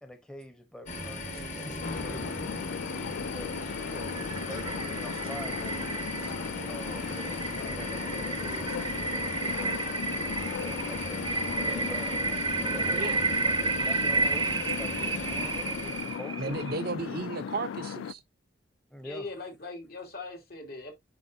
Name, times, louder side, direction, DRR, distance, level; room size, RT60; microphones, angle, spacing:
voice 1, 0.0-2.4 3.2-6.1 6.7-7.2 7.6-8.8 9.4-10.0 10.9-11.3 11.8-12.3 12.6-13.3 13.6-16.7 18.9-19.3, left 1 dB, 5° left, 1.0 m, -45 dB
sound 1, 0.9-16.2, left 1 dB, 40° left, 1.8 m, -38 dB
sound 2, 1.8-18.1, left 7 dB, 85° left, 0.3 m, -37 dB
sound 3, 3.4-16.8, right 4 dB, 25° right, 0.5 m, -32 dB
voice 2, 16.4-18.2, right 4 dB, 55° right, 0.7 m, -34 dB
voice 3, 19.0-20.9, left 3 dB, 55° left, 2.8 m, -40 dB
9.7 x 4.6 x 2.7 m
head